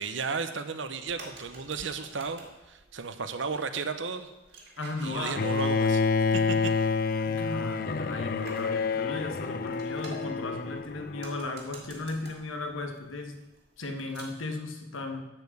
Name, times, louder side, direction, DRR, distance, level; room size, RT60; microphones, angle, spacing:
voice 1, 0.0-2.4 2.7-4.3 5.0-6.0 6.3-6.7, right 5 dB, 70° right, 9 dB, 0.8 m, -34 dB
sound 1, 0.7-14.6, right 2 dB, 50° right, 2.3 m, -52 dB
voice 2, 4.8-5.4 7.2-13.4 13.8-15.3, left 2 dB, 85° left, 5 dB, 1.3 m, -36 dB
Bowed string instrument, 5.4-11.4, left 4 dB, 45° left, 0.4 m, -28 dB
12.0 x 5.0 x 8.1 m, 1.0 s
head